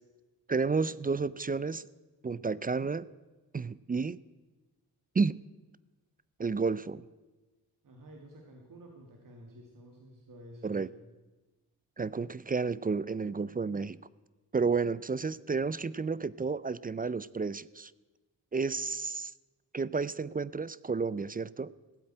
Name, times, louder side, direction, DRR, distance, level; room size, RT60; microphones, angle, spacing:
voice 1, 0.5-1.8 2.2-3.0 3.5-4.2 5.1-5.4 6.4-7.0 10.6-10.9 12.0-14.0 14.5-17.9 18.5-19.3 19.7-21.7, right 4 dB, 25° right, 20 dB, 0.4 m, -31 dB
voice 2, 7.8-11.0, right 1 dB, 60° right, 1 dB, 2.1 m, -51 dB
16.5 x 8.6 x 8.9 m, 1.2 s
cardioid pair, 85°, 38 cm